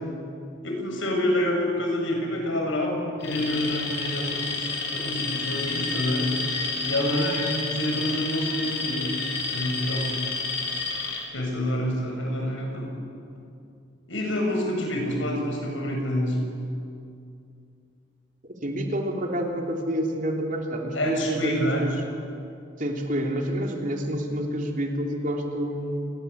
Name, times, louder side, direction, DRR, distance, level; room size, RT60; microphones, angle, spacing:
voice 1, 0.6-6.3 6.8-9.1 9.5-10.2 11.3-12.9 14.1-16.4 20.9-21.8, left 1 dB, 85° left, 1 dB, 7.1 m, -27 dB
Alarm, 3.2-11.2, left 4 dB, 60° left, 5.0 m, -30 dB
voice 2, 18.5-22.0 22.8-26.1, equal, 45° right, 2 dB, 3.3 m, -28 dB
29.0 x 21.0 x 8.3 m, 2.5 s
head